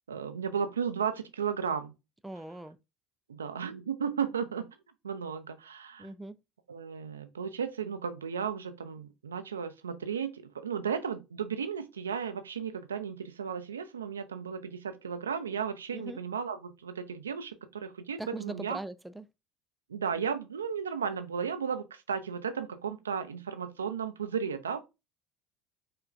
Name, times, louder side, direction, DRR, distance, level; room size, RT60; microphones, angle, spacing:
voice 1, 0.1-1.9 3.3-4.7 5.0-6.1 6.7-18.8 19.9-24.8, right 7 dB, 80° right, 0.5 m, -34 dB
voice 2, 2.2-2.8 6.0-6.4 15.9-16.2 18.2-19.2, right 2 dB, 5° right, 0.4 m, -40 dB
5.0 x 3.2 x 2.4 m
figure-of-eight pair, 65°, 0 cm